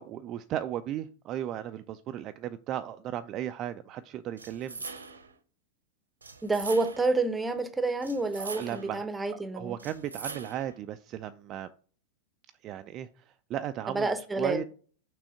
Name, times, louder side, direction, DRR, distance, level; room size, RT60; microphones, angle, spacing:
voice 1, 0.0-4.9 8.4-9.1 9.3-11.7 12.6-14.1 14.4-14.6, right 11 dB, 35° right, 0.3 m, -36 dB
sound 1, 4.4-5.3 6.2-7.2 8.0-9.0 9.8-10.8, right 4 dB, 75° right, 0.8 m, -42 dB
voice 2, 6.4-9.8 13.9-14.6, right 3 dB, 10° right, 0.7 m, -29 dB
6.1 x 3.4 x 5.6 m
figure-of-eight pair, 90°, 0 cm